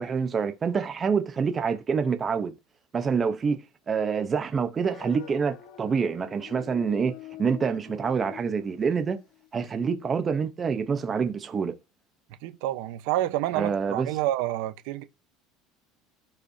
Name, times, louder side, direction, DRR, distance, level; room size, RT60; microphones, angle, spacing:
voice 1, 0.0-2.5 2.9-3.6 3.9-7.1 7.4-9.2 9.5-11.7 13.5-14.1, right 6 dB, 25° right, 0.9 m, -26 dB
sound 1, 4.8-9.7, left 13 dB, 70° left, 1.3 m, -45 dB
voice 2, 12.4-15.0, right 14 dB, 75° right, 1.0 m, -28 dB
16.0 x 5.4 x 2.8 m
cardioid pair, 150°, 0 cm